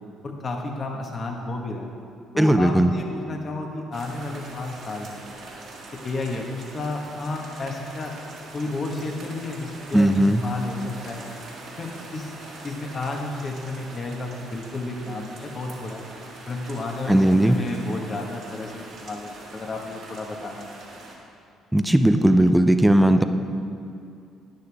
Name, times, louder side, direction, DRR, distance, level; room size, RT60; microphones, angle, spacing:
voice 1, 0.2-1.9 2.3-5.2 6.0-8.1 8.5-11.2 11.6-12.3 12.6-16.0 16.5-20.8, left 2 dB, 45° left, 1 dB, 1.6 m, -32 dB
voice 2, 2.4-2.9 9.9-10.4 17.1-17.6 21.7-23.2, right 1 dB, 5° right, 8 dB, 0.6 m, -17 dB
sound 1, 3.9-21.2, right 2 dB, 65° right, 2.1 m, -43 dB
11.5 x 9.6 x 3.6 m, 2.5 s
supercardioid pair, 70°, 0 cm